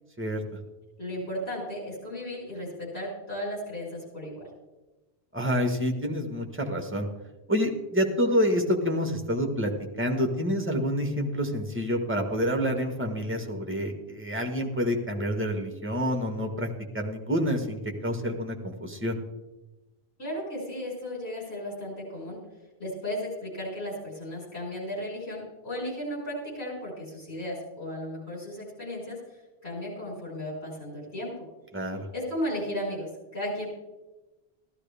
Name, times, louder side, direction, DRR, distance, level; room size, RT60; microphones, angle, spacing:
voice 1, 1.0-4.5 20.2-22.4 22.8-29.2 29.6-31.4 32.1-33.7, equal, 90° left, -4 dB, 5.7 m, -35 dB
voice 2, 5.3-7.1 7.5-9.7 10.0-16.7 16.9-19.2 31.7-32.1, equal, 10° right, 4 dB, 1.3 m, -28 dB
14.5 x 12.5 x 3.4 m, 1.1 s
omnidirectional pair, 1.1 m